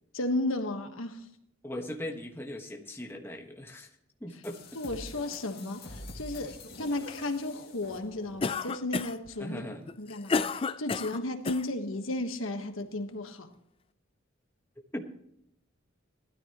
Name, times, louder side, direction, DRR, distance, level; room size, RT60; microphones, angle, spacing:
voice 1, 0.1-1.3 4.7-9.6 10.0-13.5, left 2 dB, 80° left, 6 dB, 1.4 m, -34 dB
voice 2, 1.6-3.9 4.2-4.6 9.4-9.9 14.9-15.0, left 1 dB, 10° left, 1 dB, 1.3 m, -39 dB
sound 1, 4.4-8.6, left 2 dB, 50° left, 2.1 m, -46 dB
Cough, 8.4-9.3 9.9-11.7, left 4 dB, 25° left, 0.4 m, -31 dB
19.0 x 13.0 x 3.0 m, 0.77 s
head